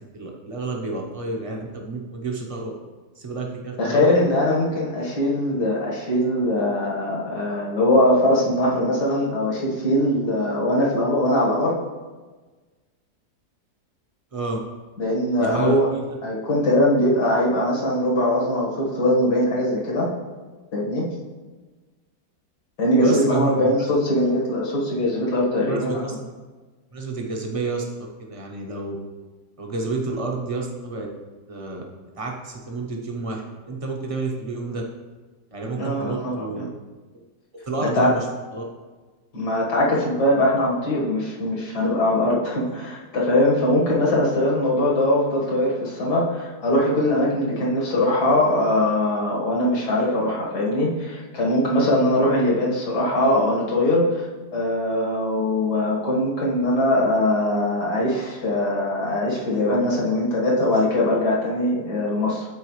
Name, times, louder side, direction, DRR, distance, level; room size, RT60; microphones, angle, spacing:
voice 1, 0.1-2.7 3.2-4.1 14.3-14.6 15.4-16.0 23.0-23.9 25.7-26.3 26.9-27.8 28.2-29.0 29.6-31.1 31.5-31.8 32.2-34.8 35.5-36.6 37.1-37.2 37.7-38.3 38.5-38.6, right 3 dB, 25° right, 0 dB, 0.9 m, -29 dB
voice 2, 3.8-11.7 15.0-15.9 16.2-20.1 20.7-21.1 22.8-26.0 35.8-36.7 37.9-38.1 39.3-54.2 54.5-62.5, left 1 dB, 70° left, -4 dB, 2.2 m, -21 dB
13.0 x 4.4 x 3.2 m, 1.3 s
omnidirectional pair, 1.8 m